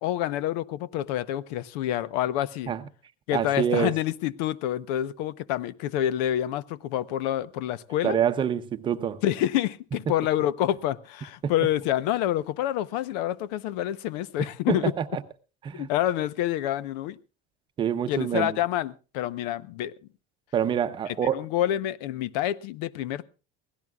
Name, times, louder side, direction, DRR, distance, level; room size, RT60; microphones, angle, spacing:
voice 1, 0.0-2.7 3.3-8.2 9.2-14.9 15.7-17.2 18.1-19.9 21.1-23.3, left 12 dB, 90° left, 0.8 m, -27 dB
voice 2, 3.3-3.9 8.0-9.2 14.7-15.2 15.6-15.9 17.8-18.6 20.5-21.4, right 8 dB, 25° right, 0.7 m, -26 dB
23.0 x 17.0 x 2.3 m
cardioid pair, 175°, 21 cm